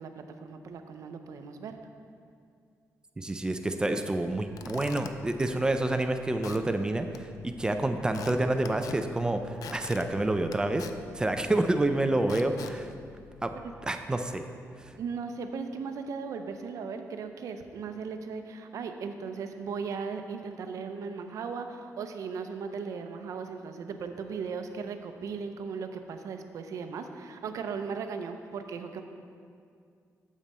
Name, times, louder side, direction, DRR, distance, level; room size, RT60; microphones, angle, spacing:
voice 1, 0.0-1.7 13.6-13.7 15.0-29.0, right 5 dB, 70° right, 7 dB, 0.6 m, -37 dB
voice 2, 3.2-10.9 11.1-12.9 13.4-13.5 13.8-14.4 14.8-14.9, right 2 dB, 15° right, 7 dB, 0.4 m, -28 dB
Squeak / Wood, 4.3-13.9, left 7 dB, 80° left, 0.4 m, -47 dB
8.8 x 7.4 x 4.2 m, 2.3 s
cardioid pair, 145°, 6 cm